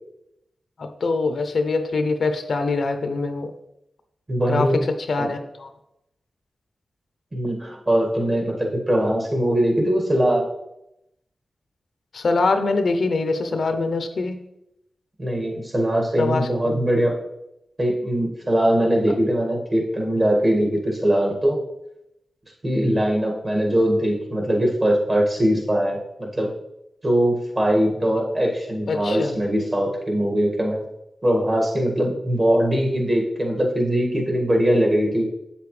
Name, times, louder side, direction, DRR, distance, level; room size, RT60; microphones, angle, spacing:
voice 1, 0.8-3.5 4.5-5.7 12.1-14.4 16.2-16.8 28.9-29.4, left 3 dB, 70° left, 8 dB, 0.6 m, -24 dB
voice 2, 4.3-4.8 5.2-5.3 7.3-10.5 15.2-17.2 17.8-21.6 22.6-26.5 27.0-30.8 31.2-35.2, equal, 35° right, 0 dB, 1.9 m, -21 dB
7.7 x 6.9 x 3.3 m, 0.85 s
cardioid pair, 70°, 0 cm